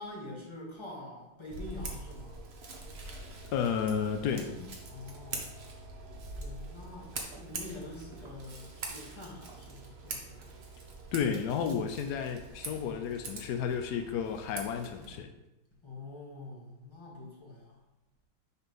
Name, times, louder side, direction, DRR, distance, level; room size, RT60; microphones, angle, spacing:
voice 1, 0.0-2.4 4.3-5.5 6.4-10.5 15.8-17.8, left 2 dB, 15° left, -4 dB, 1.3 m, -46 dB
Scissors, 1.5-15.2, right 3 dB, 60° right, 0.6 m, -44 dB
voice 2, 3.5-4.5 11.1-15.3, left 7 dB, 85° left, 6 dB, 0.8 m, -32 dB
6.7 x 3.4 x 5.4 m, 0.92 s
omnidirectional pair, 2.4 m